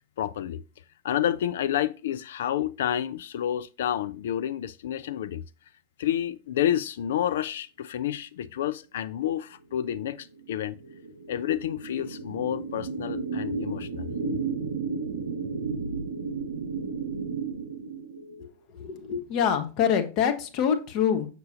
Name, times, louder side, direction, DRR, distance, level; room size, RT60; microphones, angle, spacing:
voice 1, 0.2-0.6 1.0-5.4 6.0-10.8 11.3-14.1, left 11 dB, 60° left, 0.3 m, -29 dB
sound 1, 9.7-18.5, right 4 dB, 70° right, 0.7 m, -33 dB
voice 2, 18.7-21.3, left 8 dB, 40° left, 1.1 m, -25 dB
6.6 x 6.6 x 2.5 m
figure-of-eight pair, 90°, 0 cm